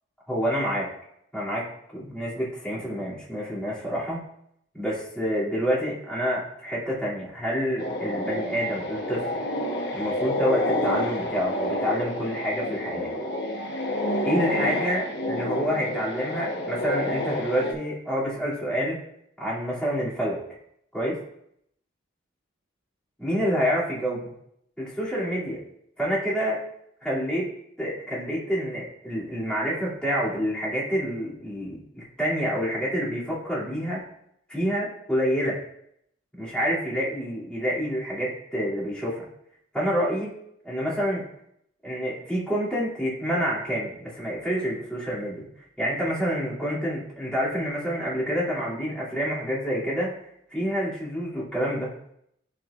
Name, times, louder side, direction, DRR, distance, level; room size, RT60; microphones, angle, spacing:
voice 1, 0.3-0.9 1.3-4.3 4.7-9.4 9.9-13.1 14.2-19.0 19.4-20.4 20.9-21.2 23.2-24.3 24.8-25.6 26.0-26.6 27.0-34.1 34.5-35.6 36.3-39.2 39.7-40.3 40.6-41.3 41.8-45.4 45.8-50.2 50.5-51.9, equal, 5° left, -10 dB, 2.7 m, -28 dB
sound 1, 7.8-17.7, left 1 dB, 55° left, 1.2 m, -29 dB
11.5 x 4.7 x 2.5 m, 0.74 s
head